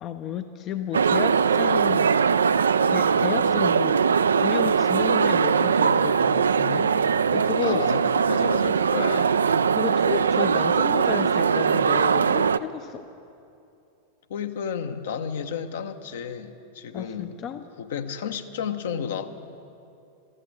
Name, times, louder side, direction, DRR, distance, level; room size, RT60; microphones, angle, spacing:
voice 1, 0.0-2.3 2.9-4.0 4.3-7.9 9.7-13.1 16.9-17.7, left 9 dB, 35° left, 9 dB, 0.5 m, -32 dB
sound 1, 0.9-12.6, right 6 dB, 70° right, 0.3 m, -21 dB
voice 2, 7.6-9.4 14.3-17.4 17.8-19.3, left 7 dB, 60° left, 8 dB, 0.9 m, -32 dB
13.5 x 13.5 x 7.6 m, 2.6 s
figure-of-eight pair, 90°, 0 cm